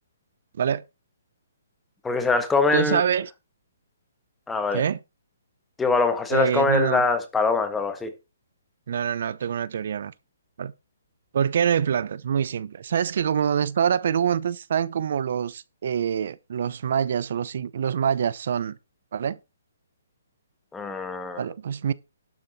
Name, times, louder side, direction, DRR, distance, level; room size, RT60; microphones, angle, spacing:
voice 1, 2.0-3.0 4.5-4.8 5.8-8.1 20.7-21.4, left 4 dB, 5° left, 1.3 m, -23 dB
voice 2, 2.7-3.3 4.7-5.0 6.3-7.0 8.9-10.1 10.6-10.7 11.3-18.8 19.1-19.4 21.4-21.9, right 8 dB, 55° right, 0.7 m, -25 dB
11.5 x 7.5 x 4.2 m
hypercardioid pair, 165°, 0 cm